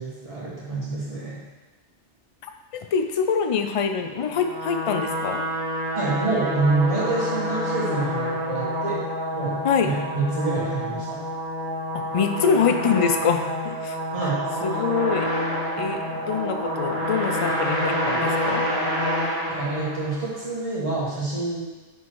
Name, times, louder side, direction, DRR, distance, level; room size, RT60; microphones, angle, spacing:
voice 1, 0.0-1.4 5.9-9.0 9.3-11.2 14.1-14.4 19.5-21.6, right 3 dB, 30° right, -7 dB, 1.9 m, -27 dB
voice 2, 2.7-5.4 9.6-9.9 12.1-14.0 14.6-15.3 15.8-18.6, left 6 dB, 55° left, 6 dB, 0.3 m, -24 dB
sound 1, 4.1-20.4, equal, 55° right, 2.1 m, -28 dB
5.9 x 4.6 x 4.6 m, 1.2 s
omnidirectional pair, 1.1 m